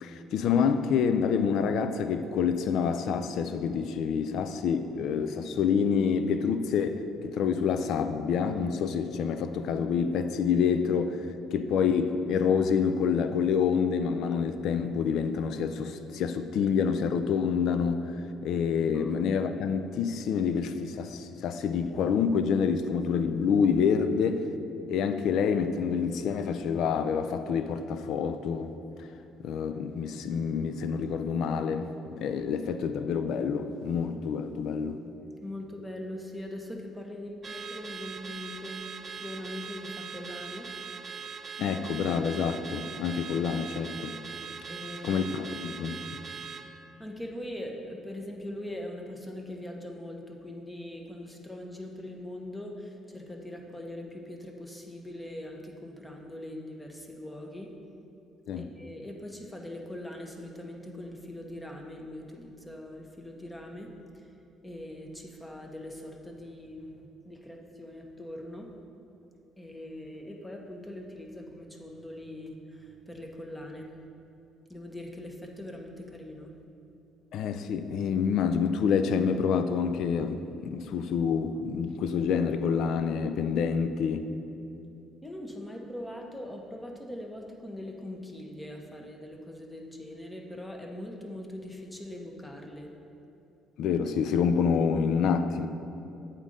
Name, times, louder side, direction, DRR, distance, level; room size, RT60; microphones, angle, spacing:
voice 1, 0.0-11.2 11.5-18.2 18.4-24.4 24.9-28.7 29.4-35.0 41.6-44.2 45.0-46.0 58.5-58.7 77.3-80.5 80.7-84.2 93.8-95.7, left 6 dB, 70° left, 0.3 m, -27 dB
voice 2, 35.4-38.8 39.2-40.7 44.7-45.2 47.0-57.7 58.5-64.3 64.6-68.7 69.6-73.9 74.7-76.5 85.2-92.9, left 1 dB, 10° left, 1.0 m, -41 dB
Car / Alarm, 37.4-46.7, right 6 dB, 40° right, 0.5 m, -41 dB
8.1 x 3.8 x 5.2 m
supercardioid pair, 70°, 0 cm